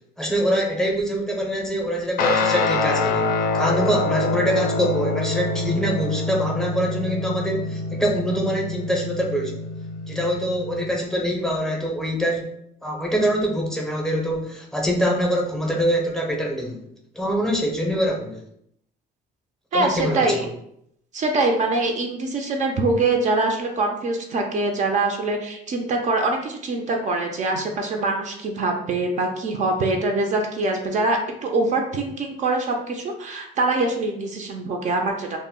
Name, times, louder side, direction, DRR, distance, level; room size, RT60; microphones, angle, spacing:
voice 1, 0.2-3.3 3.5-9.6 10.1-12.5 12.8-16.8 17.1-18.4 19.7-20.4, equal, 5° left, -1 dB, 0.6 m, -24 dB
Guitar, 2.2-10.9, left 3 dB, 60° left, 0.4 m, -25 dB
voice 2, 19.7-20.5 21.1-35.4, right 2 dB, 45° right, 2 dB, 0.4 m, -24 dB
2.1 x 2.0 x 3.6 m, 0.74 s
cardioid pair, 110°, 17 cm